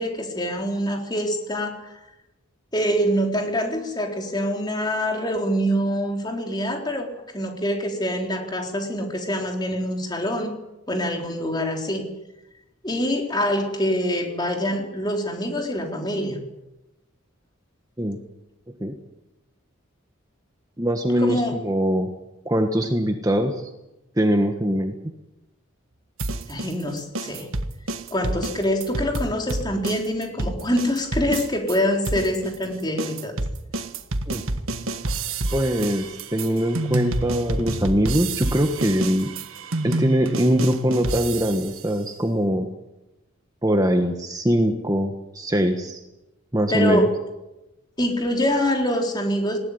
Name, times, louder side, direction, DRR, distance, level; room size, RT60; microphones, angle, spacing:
voice 1, 0.0-1.9 2.7-10.5 10.9-12.0 12.8-16.4 21.2-21.5 26.5-27.5 28.1-33.3 46.7-47.1 48.0-49.6, equal, 20° left, 2 dB, 3.9 m, -25 dB
voice 2, 20.8-22.1 22.4-23.7 24.2-24.9 34.3-34.4 35.5-39.3 39.8-42.7 43.6-46.0 46.5-47.1, equal, 15° right, 5 dB, 1.3 m, -22 dB
sound 1, 26.2-31.8 32.0-41.8, right 2 dB, 85° right, 1.5 m, -28 dB
20.0 x 18.5 x 9.8 m, 0.97 s
head